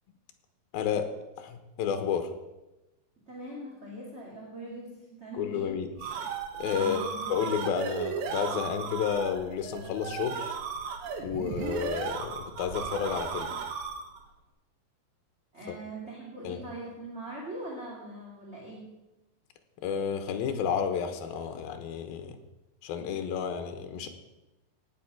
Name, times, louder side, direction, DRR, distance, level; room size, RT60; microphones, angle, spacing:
voice 1, 0.7-1.1 1.4-2.3 5.4-5.9 6.6-10.5 11.2-13.5 16.4-16.6 19.8-22.4 22.8-24.1, left 7 dB, 70° left, 7 dB, 2.8 m, -31 dB
voice 2, 3.3-5.8 6.8-7.3 15.5-18.9, right 1 dB, 20° right, -4 dB, 1.9 m, -41 dB
sound 1, 5.7-14.2, right 6 dB, 85° right, 3.6 m, -35 dB
18.0 x 7.6 x 6.1 m, 1.0 s
omnidirectional pair, 4.9 m